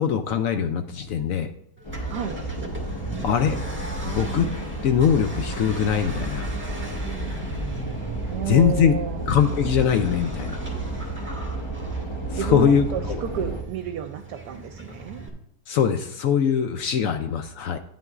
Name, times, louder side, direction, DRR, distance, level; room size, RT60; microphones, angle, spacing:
voice 1, 0.0-1.5 3.2-3.6 4.0-4.5 4.8-6.5 8.5-8.9 9.3-10.6 12.3-13.2 15.7-17.8, left 8 dB, 70° left, 8 dB, 0.8 m, -22 dB
sound 1, 1.8-13.6, right 2 dB, 30° left, 0.5 m, -31 dB
Accelerating revving vroom, 1.8-15.3, right 3 dB, 5° right, 1.4 m, -38 dB
voice 2, 8.3-9.3 12.4-15.2, right 8 dB, 75° right, 7 dB, 1.1 m, -31 dB
11.0 x 9.1 x 2.4 m, 0.72 s
omnidirectional pair, 1.8 m